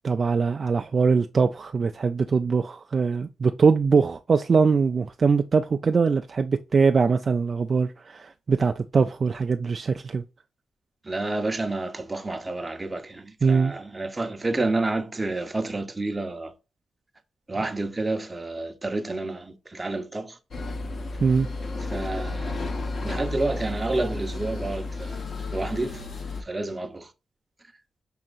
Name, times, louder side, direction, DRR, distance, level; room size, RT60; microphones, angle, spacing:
voice 1, 0.0-10.2 13.4-13.7 21.2-21.5, right 5 dB, 45° right, 0.3 m, -22 dB
voice 2, 11.0-16.5 17.5-20.4 21.9-22.8 23.0-25.2 25.5-26.0 26.4-27.1, right 2 dB, 20° right, 0.7 m, -29 dB
sound 1, 20.5-26.4, left 2 dB, 50° left, 0.9 m, -32 dB
6.1 x 2.8 x 2.4 m
cardioid pair, 100°, 0 cm